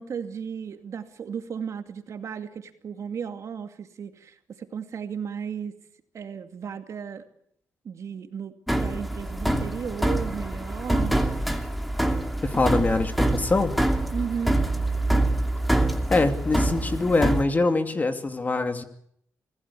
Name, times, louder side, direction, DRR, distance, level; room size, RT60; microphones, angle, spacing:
voice 1, 0.0-5.8 6.1-7.3 7.8-11.2 14.1-14.6, right 7 dB, 60° right, 7 dB, 2.4 m, -35 dB
sound 1, 8.7-17.4, right 1 dB, ahead, 2.7 m, -25 dB
voice 2, 12.4-13.8 16.1-18.8, left 3 dB, 30° left, 8 dB, 2.6 m, -24 dB
26.0 x 16.0 x 8.5 m, 0.70 s
cardioid pair, 85°, 6 cm